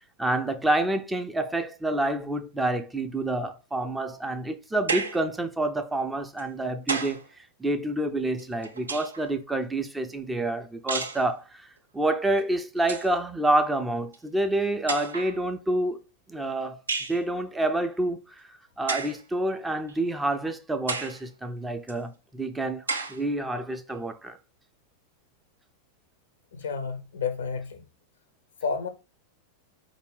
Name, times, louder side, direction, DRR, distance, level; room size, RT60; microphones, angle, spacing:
voice 1, 0.2-7.2 7.6-11.7 11.9-16.0 16.3-16.8 17.1-18.4 18.8-22.8 23.1-24.4, right 2 dB, 10° right, 0.4 m, -28 dB
sound 1, 4.9-5.3 6.4-7.3 8.4-9.3 10.9-11.3 12.4-12.5 12.8-13.1 14.1-14.2 14.9-15.4 16.9-17.2 18.9-19.2 19.9-20.0 20.9-21.2 21.9-22.0 22.9-23.2, right 4 dB, 75° right, 0.5 m, -32 dB
voice 2, 26.6-27.8 28.6-28.9, left 5 dB, 65° left, 0.7 m, -30 dB
4.2 x 2.6 x 3.3 m
figure-of-eight pair, 90°, 0 cm